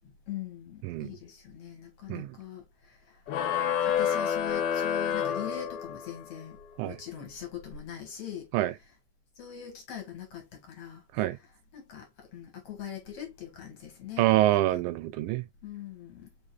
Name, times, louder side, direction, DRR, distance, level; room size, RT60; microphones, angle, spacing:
voice 1, 0.3-3.0 3.9-6.6 6.8-8.5 9.4-11.0 11.7-14.3 15.6-16.3, left 9 dB, 55° left, 2.2 m, -41 dB
sound 1, 3.3-6.2, left 8 dB, 85° left, 2.4 m, -28 dB
voice 2, 14.2-15.5, right 15 dB, 80° right, 1.9 m, -26 dB
5.0 x 3.6 x 2.3 m
omnidirectional pair, 3.6 m